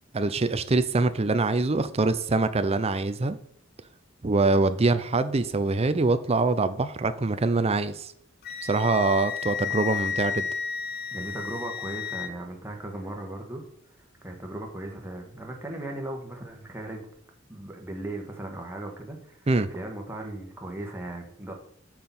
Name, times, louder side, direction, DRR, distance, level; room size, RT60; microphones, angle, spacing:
voice 1, 0.1-3.4 4.2-8.1 8.6-10.5 19.5-19.7, right 3 dB, 30° right, 0.6 m, -24 dB
Wind instrument woodwind instrument, 8.4-12.3, left 7 dB, 50° left, 0.8 m, -32 dB
voice 2, 11.1-13.6 14.2-17.1 17.5-21.5, right 1 dB, 10° right, 1.5 m, -37 dB
6.8 x 6.0 x 5.4 m
head